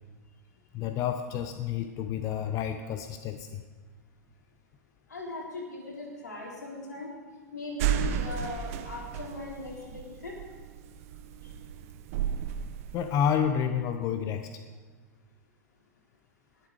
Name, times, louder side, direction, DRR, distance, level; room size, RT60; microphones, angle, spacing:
voice 1, 0.7-3.6 12.9-14.5, left 8 dB, 35° left, 8 dB, 0.7 m, -29 dB
voice 2, 5.1-7.1 7.5-10.4 11.4-11.5, left 3 dB, 85° left, -2 dB, 3.4 m, -39 dB
sound 1, 7.8-13.3, right 9 dB, 55° right, 0.8 m, -33 dB
19.0 x 7.3 x 4.8 m, 1.4 s
hypercardioid pair, 100°, 9 cm